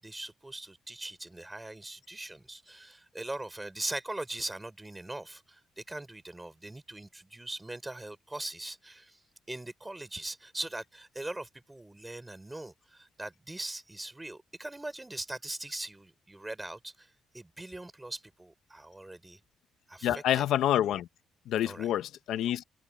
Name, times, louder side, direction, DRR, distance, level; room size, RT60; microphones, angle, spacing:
voice 1, 0.0-9.2 9.5-19.4 19.9-20.4 21.6-21.9, right 2 dB, 15° right, 5.2 m, -41 dB
voice 2, 20.0-21.1 21.5-22.6, left 12 dB, 80° left, 1.0 m, -27 dB
cardioid pair, 90°, 0 cm